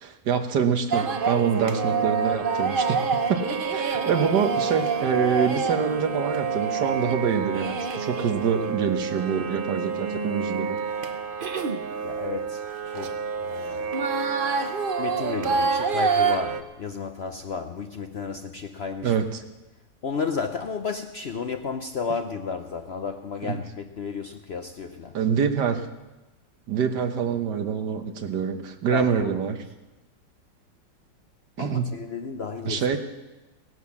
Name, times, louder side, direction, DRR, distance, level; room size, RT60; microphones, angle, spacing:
voice 1, 0.0-10.8 19.0-19.4 23.4-23.6 25.1-25.9 26.7-29.6 31.6-31.9 32.7-33.0, right 7 dB, 70° right, 7 dB, 1.8 m, -26 dB
sound 1, 0.9-16.6, right 5 dB, 40° right, 0.8 m, -27 dB
voice 2, 12.0-13.9 15.0-19.1 20.0-25.2 28.9-29.4 31.6-33.0, left 5 dB, 60° left, 7 dB, 0.7 m, -33 dB
17.0 x 11.0 x 7.2 m, 1.1 s
omnidirectional pair, 1.9 m